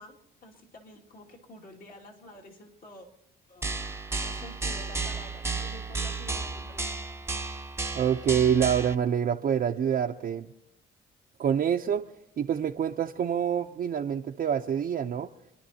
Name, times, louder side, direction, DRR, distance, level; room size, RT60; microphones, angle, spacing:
voice 1, 0.0-3.1 3.5-3.7 4.2-7.0, left 1 dB, 45° left, 0 dB, 2.3 m, -49 dB
sound 1, 3.6-8.9, right 3 dB, 15° right, 0.8 m, -33 dB
voice 2, 7.9-10.5 11.4-12.0 12.4-15.3, right 8 dB, 50° right, 2 dB, 0.7 m, -26 dB
29.0 x 11.0 x 2.8 m, 0.85 s
cardioid pair, 90°, 20 cm